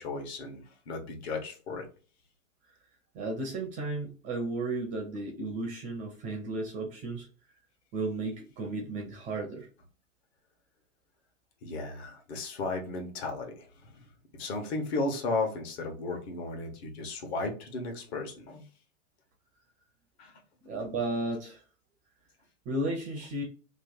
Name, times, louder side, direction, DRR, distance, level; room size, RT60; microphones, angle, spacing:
voice 1, 0.0-1.9 11.6-14.1 14.3-18.7 20.2-20.4, left 3 dB, 50° left, 2 dB, 1.3 m, -35 dB
voice 2, 3.1-7.3 7.9-9.7 20.6-21.6 22.7-23.4, right 2 dB, 20° right, 1 dB, 0.5 m, -34 dB
3.1 x 2.6 x 3.9 m, 0.37 s
hypercardioid pair, 130°, 41 cm